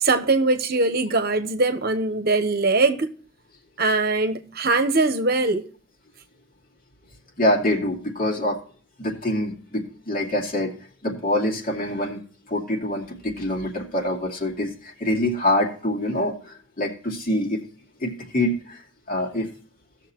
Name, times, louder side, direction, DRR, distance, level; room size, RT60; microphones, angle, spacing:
voice 1, 0.0-3.1 3.8-5.6, right 3 dB, 50° right, 1.0 m, -21 dB
voice 2, 7.4-8.6 9.0-10.7 11.0-12.2 12.5-17.6 18.0-18.8 19.1-19.5, left 1 dB, 45° left, 2.4 m, -25 dB
17.0 x 6.6 x 2.9 m
head